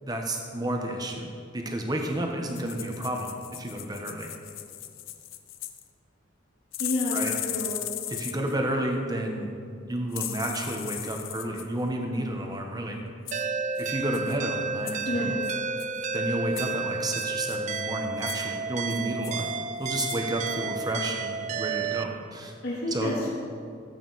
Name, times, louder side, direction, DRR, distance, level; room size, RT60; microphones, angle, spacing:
voice 1, 0.0-4.3 7.1-7.3 8.1-9.5 9.9-13.0 13.8-15.3 16.1-19.5 19.8-22.5 22.9-23.1, right 1 dB, 20° right, 2 dB, 1.2 m, -31 dB
sound 1, 2.5-5.8 6.7-8.6 10.1-11.7 13.3-13.5 13.8-13.9 14.1-14.4 14.9-15.1 15.4-16.1 16.6-16.7 17.2-17.8 18.2-18.5 18.9-19.5 19.8-20.2 20.5-20.6, left 13 dB, 85° left, 0.6 m, -37 dB
voice 2, 6.8-7.2 7.4-7.8 15.1-15.4 22.6-23.3, left 1 dB, 55° left, -8 dB, 2.0 m, -29 dB
sound 2, 13.3-22.0, right 5 dB, 40° right, 0.4 m, -31 dB
14.0 x 8.6 x 4.2 m, 2.3 s
head